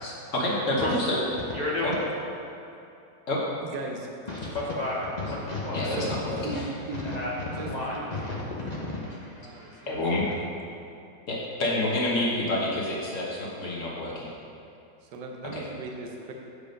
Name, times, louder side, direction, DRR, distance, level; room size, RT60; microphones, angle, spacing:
voice 1, 0.0-1.2 1.8-1.9 3.3-3.4 5.7-6.0 6.3-6.6 9.9-10.2 11.3-14.3 15.5-15.6, left 1 dB, 45° left, -4 dB, 1.4 m, -28 dB
voice 2, 1.5-1.8 4.3-5.9 7.0-9.9, left 2 dB, 80° left, -5 dB, 0.3 m, -32 dB
voice 3, 3.6-4.1 5.8-7.1 7.5-8.1 9.1-10.5 15.0-16.3, right 3 dB, 65° right, 1 dB, 1.4 m, -38 dB
7.1 x 5.1 x 5.2 m, 2.7 s
omnidirectional pair, 2.0 m